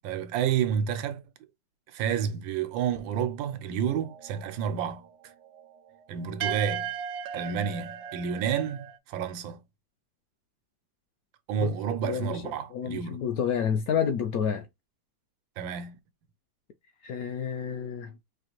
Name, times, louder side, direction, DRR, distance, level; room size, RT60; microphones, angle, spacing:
voice 1, 0.0-1.2 1.9-5.3 6.1-6.9 7.3-9.6 11.5-13.2 15.6-16.0, right 8 dB, 90° right, 1.4 m, -30 dB
sound 1, 3.8-9.0, right 8 dB, 70° right, 1.0 m, -37 dB
voice 2, 12.0-12.4 12.7-14.7 17.0-18.1, left 7 dB, 75° left, 0.8 m, -29 dB
4.7 x 2.5 x 2.9 m
omnidirectional pair, 2.0 m